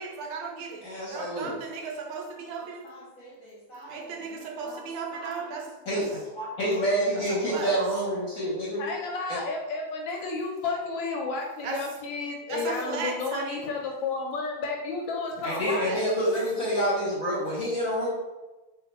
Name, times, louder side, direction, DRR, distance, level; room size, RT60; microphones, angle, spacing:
voice 1, 0.0-2.9 3.9-6.1 7.1-7.8 11.6-11.8 12.5-13.7 15.4-16.1, right 5 dB, 80° right, 1 dB, 1.5 m, -36 dB
voice 2, 0.8-1.6 2.6-4.8 5.1-5.4 5.8-8.8 9.3-9.4 15.4-18.1, equal, 55° left, -5 dB, 0.9 m, -29 dB
voice 3, 8.8-15.9, left 4 dB, 75° left, 1 dB, 1.2 m, -32 dB
3.5 x 2.6 x 4.1 m, 1.1 s
omnidirectional pair, 2.4 m